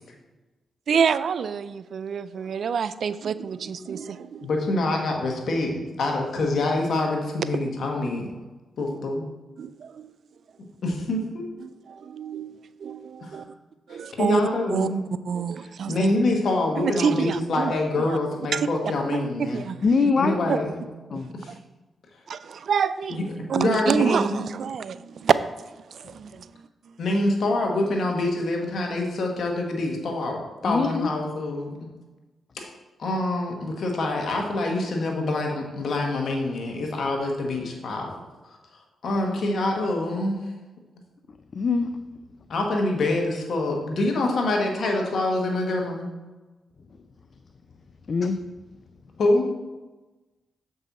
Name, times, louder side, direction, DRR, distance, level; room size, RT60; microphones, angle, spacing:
voice 1, 0.9-4.5 9.6-10.0 11.6-12.5 12.8-13.4 13.9-14.4 14.7-14.9 15.2-16.1 16.8-17.7 18.1-18.2 18.5-18.7 19.1-19.8 20.5-20.6 21.5-21.6 22.3-23.2 23.5-25.3 25.9-26.7, right 7 dB, 70° right, 15 dB, 0.3 m, -27 dB
voice 2, 4.4-8.3 8.8-9.2 10.8-11.4 13.2-13.4 13.9-15.0 15.9-19.6 20.2-20.8 21.4-21.5 23.1-23.2 23.5-24.4 27.0-30.4 30.6-31.9 32.5-32.7 33.0-38.1 38.5-38.6 39.0-40.5 42.5-46.1 49.2-49.5, left 2 dB, 70° left, 1 dB, 1.5 m, -25 dB
voice 3, 19.8-20.4 21.1-21.3 30.6-31.1 41.5-41.9 48.1-48.4, left 4 dB, 55° left, 8 dB, 0.4 m, -23 dB
7.2 x 5.4 x 4.1 m, 1.2 s
supercardioid pair, 45°, 0 cm